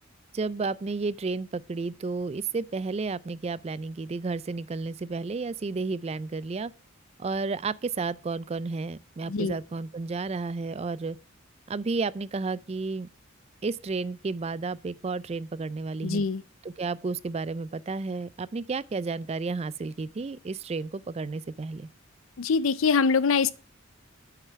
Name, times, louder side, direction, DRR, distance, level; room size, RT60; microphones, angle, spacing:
voice 1, 0.3-6.7 7.2-11.2 11.7-13.1 13.6-16.2 16.6-21.9, right 4 dB, 30° right, 0.4 m, -32 dB
voice 2, 16.0-16.4 22.4-23.5, left 5 dB, 80° left, 0.6 m, -24 dB
8.6 x 6.6 x 4.6 m
head